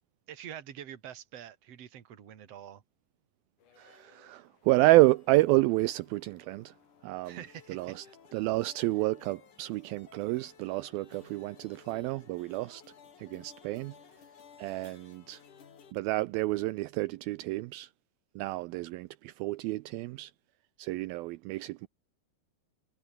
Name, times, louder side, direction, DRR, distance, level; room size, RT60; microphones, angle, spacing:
voice 1, 0.3-2.8 7.3-8.1, right 10 dB, 45° right, 2.7 m, -46 dB
sound 1, 3.6-15.9, left 7 dB, 55° left, 4.4 m, -57 dB
voice 2, 3.8-6.7 7.0-7.4 7.7-8.1 8.3-12.8 13.2-13.9 14.6-15.4 15.9-17.9 18.4-20.3 20.8-21.9, right 19 dB, 80° right, 2.4 m, -29 dB
omnidirectional pair, 4.4 m